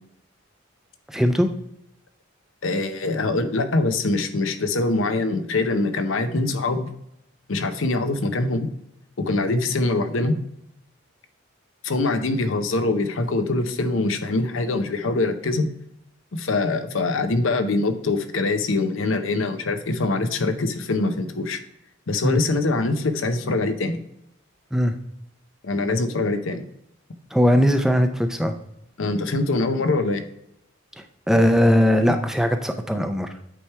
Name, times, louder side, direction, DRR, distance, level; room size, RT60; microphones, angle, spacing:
voice 1, 1.1-1.5 22.2-22.4 24.7-24.9 27.3-28.5 31.3-33.3, equal, ahead, 6 dB, 0.4 m, -19 dB
voice 2, 2.6-6.9 7.5-8.7 9.2-10.3 11.8-15.7 16.3-21.6 22.1-24.0 25.6-26.6 29.0-30.2, left 2 dB, 75° left, 8 dB, 0.7 m, -23 dB
8.5 x 3.4 x 4.5 m, 0.79 s
head